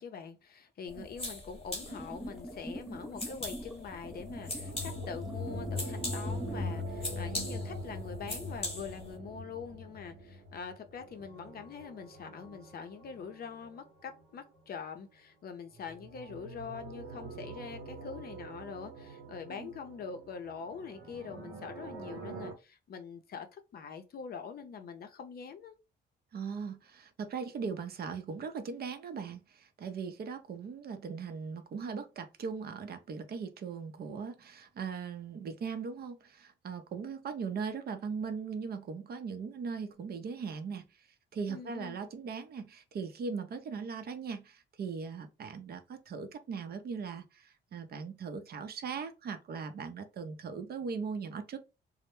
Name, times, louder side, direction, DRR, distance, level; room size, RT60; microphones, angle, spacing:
voice 1, 0.0-25.7 41.5-42.0, left 6 dB, 50° left, 0.5 m, -44 dB
sound 1, 0.9-9.2, left 2 dB, 30° left, 1.0 m, -42 dB
sound 2, 1.8-7.0, equal, ahead, 0.4 m, -45 dB
sound 3, 3.9-14.6 15.7-22.5, left 1 dB, 90° right, 0.7 m, -43 dB
voice 2, 26.3-40.9 41.3-51.6, right 5 dB, 50° right, 0.5 m, -39 dB
2.1 x 2.0 x 3.0 m
cardioid pair, 90°, 20 cm